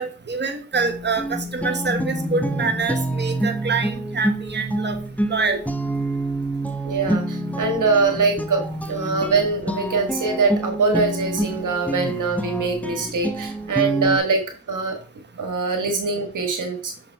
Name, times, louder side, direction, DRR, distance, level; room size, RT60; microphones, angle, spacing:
voice 1, 0.0-5.0 5.3-5.6, right 4 dB, 35° right, 6 dB, 1.2 m, -25 dB
sound 1, 0.7-14.2, right 1 dB, 5° left, 0.9 m, -27 dB
voice 2, 6.8-8.6 8.9-14.4 14.7-15.0 15.4-16.9, right 4 dB, 85° right, 4 dB, 1.7 m, -23 dB
6.3 x 3.9 x 4.7 m, 0.37 s
cardioid pair, 40°, 30 cm